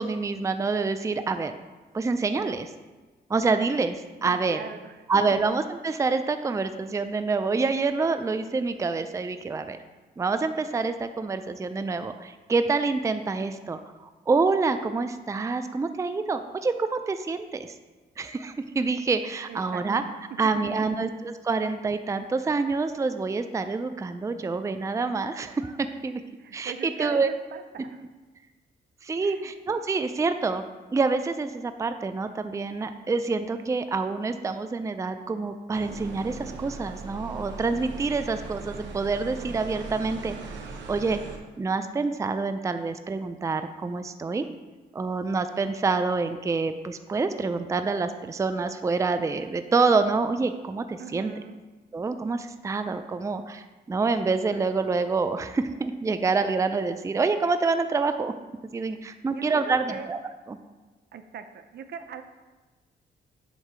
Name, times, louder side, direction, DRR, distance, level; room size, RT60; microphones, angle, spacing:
voice 1, 0.0-1.6 1.9-2.7 3.3-4.6 5.1-9.8 10.2-17.7 18.2-20.0 20.4-26.2 26.5-27.3 29.0-30.6 30.9-40.4 40.9-41.2 41.6-44.5 44.9-51.3 51.9-58.3 58.7-60.2 60.5-60.6, right 4 dB, 15° right, 9 dB, 0.4 m, -27 dB
voice 2, 4.2-5.4 19.5-20.1 20.4-20.6 26.4-28.0 29.2-29.5 51.0-51.6 59.3-60.1 61.1-62.2, right 7 dB, 65° right, 9 dB, 0.6 m, -41 dB
sound 1, 35.7-41.4, right 3 dB, 85° right, 0.9 m, -39 dB
8.1 x 2.7 x 6.1 m, 1.3 s
cardioid pair, 75°, 18 cm